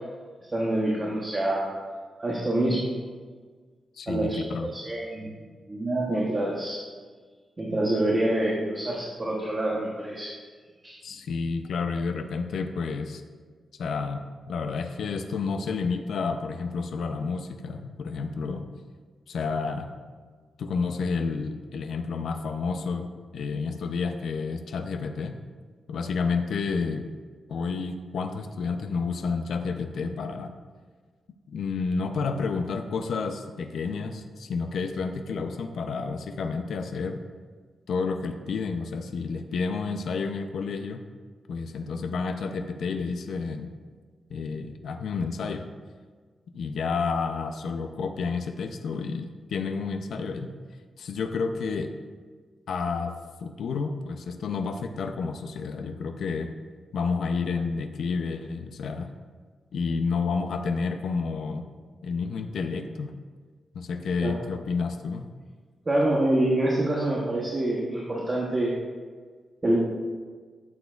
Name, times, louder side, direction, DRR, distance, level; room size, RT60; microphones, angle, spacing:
voice 1, 0.5-1.7 2.2-2.9 4.1-5.3 5.7-6.8 7.6-10.4 10.8-11.0 64.2-64.4 65.9-68.7 69.6-69.8, right 1 dB, 20° right, -3 dB, 1.0 m, -26 dB
voice 2, 4.0-4.7 11.0-13.2 13.8-18.7 19.3-19.9 20.6-25.4 25.9-27.1 27.5-30.5 31.5-37.2 37.9-41.0 41.5-43.7 44.3-45.7 46.5-50.5 51.0-51.9 52.7-53.1 53.4-56.5 56.9-59.1 59.7-61.7 62.0-63.1 63.7-65.3, left 4 dB, 75° left, 6 dB, 0.5 m, -30 dB
11.5 x 7.1 x 2.4 m, 1.5 s
wide cardioid pair, 165°, 0 cm